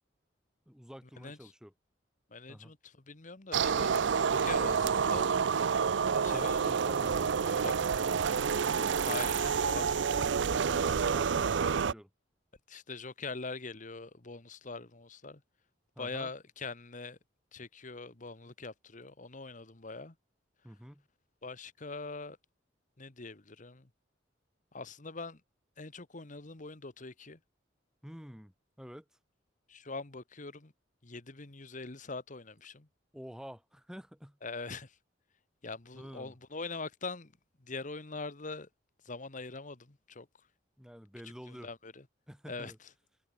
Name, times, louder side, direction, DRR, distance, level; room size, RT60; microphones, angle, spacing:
voice 1, 0.7-1.7 2.5-2.7 6.0-9.0 10.7-12.1 16.0-16.3 20.6-21.1 28.0-29.0 33.1-34.4 35.9-36.3 40.8-41.7 42.3-42.8, equal, 5° right, 2.8 m, -48 dB
voice 2, 1.2-1.5 2.3-5.4 6.2-6.7 7.6-7.7 9.0-10.3 12.7-15.4 16.0-17.2 17.5-20.1 21.4-22.4 23.0-23.9 24.7-25.4 25.8-27.4 29.7-30.7 31.0-32.9 34.4-35.0 35.6-37.3 37.6-38.7 39.0-40.3 41.5-42.0 42.5-42.9, left 3 dB, 45° left, 1.4 m, -43 dB
sound 1, 3.5-11.9, right 6 dB, 75° right, 0.5 m, -29 dB
head